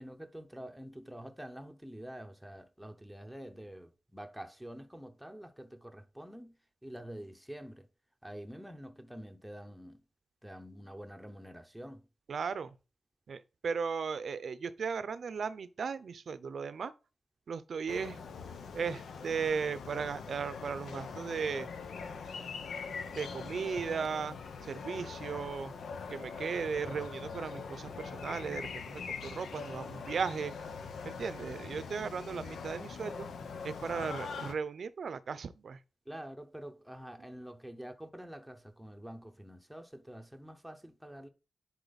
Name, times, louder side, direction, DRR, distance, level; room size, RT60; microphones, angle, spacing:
voice 1, 0.0-6.6 6.8-7.9 8.2-10.0 10.4-12.1 36.1-41.3, equal, ahead, 0.8 m, -47 dB
voice 2, 12.3-12.8 13.3-16.9 17.5-18.2 18.7-21.7 23.2-24.4 24.6-25.7 26.1-30.5 31.0-33.3 33.6-35.8, right 6 dB, 65° right, 0.6 m, -36 dB
sound 1, 17.9-34.5, left 5 dB, 90° left, 0.9 m, -42 dB
10.5 x 4.4 x 4.1 m
wide cardioid pair, 125°, 0 cm